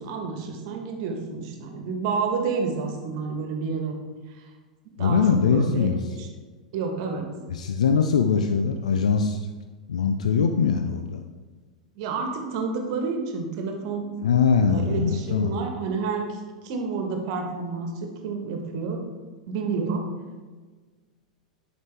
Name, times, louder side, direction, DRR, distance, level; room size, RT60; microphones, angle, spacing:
voice 1, 0.0-3.9 4.3-4.4 5.0-6.3 6.7-7.3 11.9-14.1 14.6-19.0 19.5-20.0, right 4 dB, 50° right, 3 dB, 1.5 m, -29 dB
voice 2, 5.0-6.0 7.5-9.5 9.9-11.2 14.2-15.6, left 6 dB, 70° left, 7 dB, 0.5 m, -22 dB
10.5 x 5.0 x 3.4 m, 1.4 s
figure-of-eight pair, 90°, 4 cm